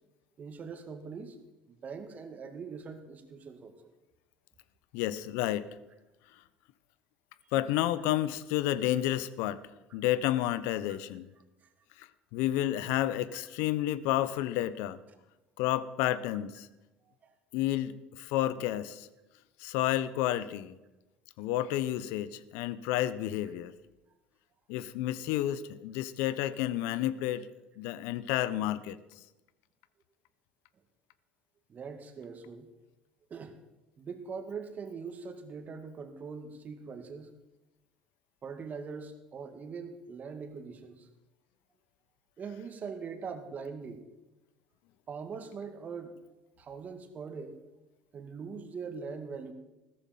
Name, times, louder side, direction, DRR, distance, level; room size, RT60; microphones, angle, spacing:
voice 1, 0.4-1.4 1.7-3.7 10.9-11.0 13.3-13.5 17.2-17.3 31.7-32.7 33.3-33.6 34.0-37.4 38.4-41.1 42.4-44.0 45.1-47.6 48.1-49.5, right 5 dB, 40° right, 7 dB, 2.4 m, -42 dB
voice 2, 4.9-5.7 7.5-9.6 9.9-11.3 12.0-15.0 15.6-16.7 17.5-19.1 19.6-20.8 21.4-23.7 24.7-27.5 27.8-29.0, left 13 dB, 70° left, 17 dB, 0.9 m, -30 dB
15.5 x 14.0 x 5.5 m, 1.0 s
hypercardioid pair, 70°, 4 cm